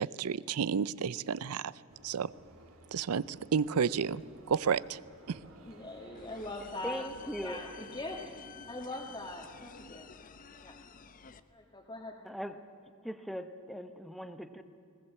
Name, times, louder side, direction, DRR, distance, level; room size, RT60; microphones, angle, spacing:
voice 1, 0.0-1.7 2.0-2.3 2.9-4.2 4.5-5.0 5.3-5.4, right 6 dB, 80° right, 19 dB, 0.5 m, -31 dB
sound 1, 1.9-8.2, right 2 dB, 65° right, 2.3 m, -57 dB
voice 2, 5.6-7.0 7.4-10.0 10.6-10.7 11.5-12.1, left 2 dB, 20° left, -3 dB, 1.8 m, -42 dB
sound 2, 6.1-11.4, left 6 dB, 40° left, 0.7 m, -51 dB
voice 3, 6.6-7.6 12.2-12.6 13.0-14.6, equal, ahead, 8 dB, 0.8 m, -40 dB
20.0 x 18.5 x 7.6 m, 2.5 s
head